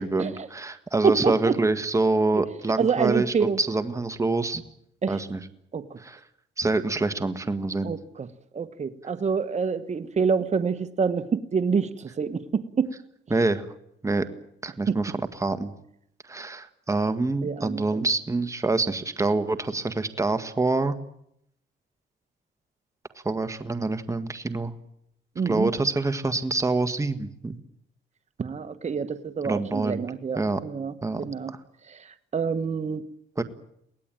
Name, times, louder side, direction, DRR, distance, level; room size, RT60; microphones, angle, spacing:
voice 1, 0.0-4.6 5.1-5.4 6.0-6.2 6.6-7.9 13.3-13.6 14.0-14.3 14.6-15.7 16.2-20.9 23.2-24.7 25.4-27.6 29.4-30.0 30.3-30.6 31.0-31.6 33.4-33.5, right 3 dB, 15° right, 8 dB, 1.6 m, -26 dB
voice 2, 1.0-1.6 2.3-2.5 2.8-3.6 5.0-5.2 5.7-6.0 7.8-8.3 8.5-12.9 14.9-15.0 17.4-18.0 25.3-25.7 28.4-31.5 31.9-33.1, right 5 dB, 35° right, 9 dB, 1.4 m, -27 dB
23.5 x 18.0 x 9.0 m, 0.76 s
cardioid pair, 90°, 20 cm